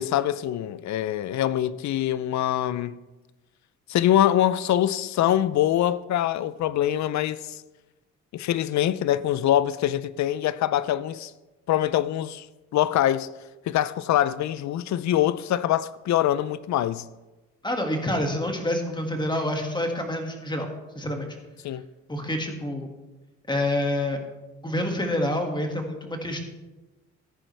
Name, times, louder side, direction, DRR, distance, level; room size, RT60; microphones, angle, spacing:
voice 1, 0.0-3.0 3.9-7.6 8.3-11.3 11.7-12.5 12.7-13.3 13.7-17.1 21.6-21.8, left 12 dB, 65° left, 0.6 m, -24 dB
voice 2, 17.6-20.7 21.0-21.3 22.1-22.9 23.5-24.2 24.6-26.4, left 1 dB, 15° left, 2.0 m, -27 dB
14.0 x 10.0 x 3.4 m
cardioid pair, 90°, 30 cm